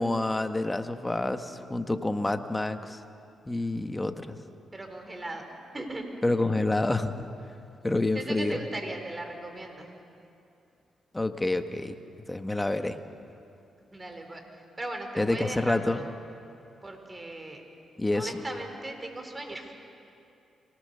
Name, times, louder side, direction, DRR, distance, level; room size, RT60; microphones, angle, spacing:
voice 1, 0.0-3.0 3.5-4.4 6.2-7.2 7.8-8.6 11.1-12.0 12.3-13.0 15.2-16.0 18.0-18.3, left 2 dB, 15° left, 8 dB, 1.5 m, -28 dB
voice 2, 4.7-5.4 5.7-6.1 8.1-9.9 13.9-14.4 14.8-16.1 16.8-17.6 18.1-19.7, right 2 dB, 25° right, 4 dB, 4.2 m, -38 dB
24.0 x 18.5 x 6.8 m, 2.6 s
supercardioid pair, 55°, 0 cm